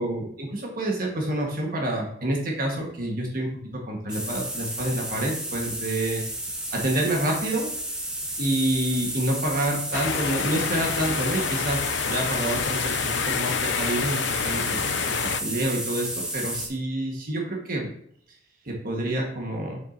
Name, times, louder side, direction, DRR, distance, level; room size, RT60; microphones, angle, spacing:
voice 1, 0.0-3.5 3.9-6.2 6.7-7.7 8.4-15.0 15.4-17.9 18.6-19.8, right 1 dB, 55° right, 0 dB, 1.4 m, -28 dB
sound 1, 4.1-16.7, right 1 dB, 5° right, 1.2 m, -32 dB
sound 2, 9.9-15.4, left 8 dB, 75° left, 0.4 m, -28 dB
7.2 x 7.1 x 2.6 m, 0.69 s
head